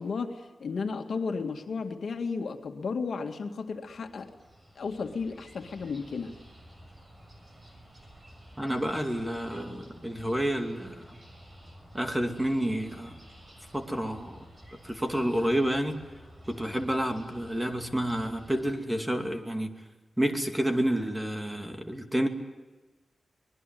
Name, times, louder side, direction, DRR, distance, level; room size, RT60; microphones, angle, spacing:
voice 1, 0.0-4.3 4.8-6.3, left 4 dB, 75° left, 5 dB, 2.1 m, -33 dB
sound 1, 3.7-18.8, equal, 25° right, 6.9 m, -52 dB
voice 2, 8.6-11.2 11.9-13.2 13.7-14.4 14.8-16.0 16.5-19.7 20.2-22.3, right 1 dB, 10° right, 5 dB, 2.6 m, -29 dB
24.5 x 20.5 x 9.2 m, 1.2 s
wide cardioid pair, 100°, 0 cm